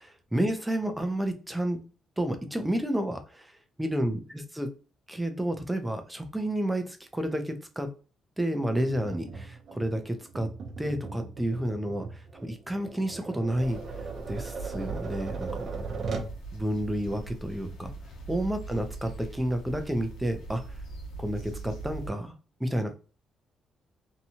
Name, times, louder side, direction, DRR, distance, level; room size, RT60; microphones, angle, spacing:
voice 1, 0.3-1.8 2.2-3.5 3.8-4.7 5.1-7.9 8.4-10.5 10.8-13.8 14.3-15.6 16.5-17.9 18.3-20.6 21.2-22.3 22.6-22.9, right 1 dB, 10° right, 7 dB, 0.6 m, -30 dB
Tap, 8.9-16.4, right 4 dB, 55° right, 0.7 m, -39 dB
sound 1, 13.6-22.1, right 3 dB, 85° left, 0.9 m, -40 dB
2.8 x 2.2 x 2.9 m, 0.35 s
cardioid pair, 90°, 0 cm